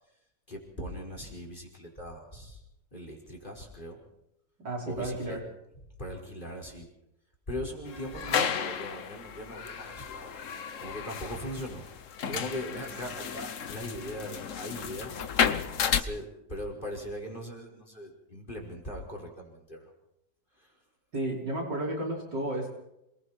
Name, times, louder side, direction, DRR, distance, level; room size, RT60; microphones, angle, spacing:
voice 1, 0.5-2.6 2.9-4.0 4.8-5.4 5.7-6.9 7.5-10.4 10.8-11.8 12.3-15.2 16.0-19.9 20.5-20.8, equal, 25° left, 1 dB, 5.1 m, -40 dB
voice 2, 4.6-5.4 21.1-22.7, right 1 dB, 65° right, -2 dB, 5.9 m, -32 dB
sound 1, 7.9-16.0, left 7 dB, 50° left, 1.2 m, -32 dB
27.5 x 22.0 x 4.4 m, 0.82 s
omnidirectional pair, 2.0 m